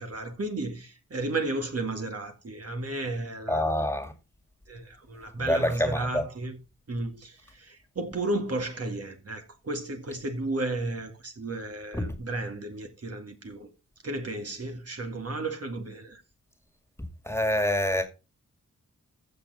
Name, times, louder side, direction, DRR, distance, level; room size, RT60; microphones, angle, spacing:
voice 1, 0.0-3.8 4.7-6.6 6.9-13.7 14.0-16.2, right 2 dB, 50° right, 2.2 m, -33 dB
voice 2, 3.5-4.1 5.4-6.2 11.9-12.0 17.3-18.1, left 1 dB, 10° left, 2.2 m, -26 dB
14.5 x 6.8 x 4.2 m
wide cardioid pair, 100°, 31 cm